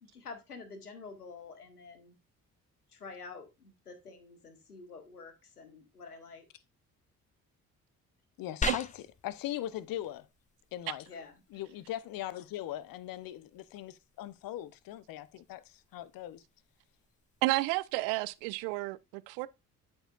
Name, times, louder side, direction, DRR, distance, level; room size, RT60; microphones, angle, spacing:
voice 1, 0.0-2.1 2.9-6.5 11.1-11.3, left 4 dB, 85° left, 1.3 m, -48 dB
voice 2, 8.4-8.9 9.2-10.3 10.7-11.1 11.5-16.4, left 13 dB, 50° left, 0.9 m, -40 dB
sound 1, 8.6-18.6, left 4 dB, 15° left, 0.8 m, -45 dB
voice 3, 17.4-19.5, right 20 dB, 60° right, 0.6 m, -31 dB
12.5 x 4.4 x 2.4 m
figure-of-eight pair, 45°, 44 cm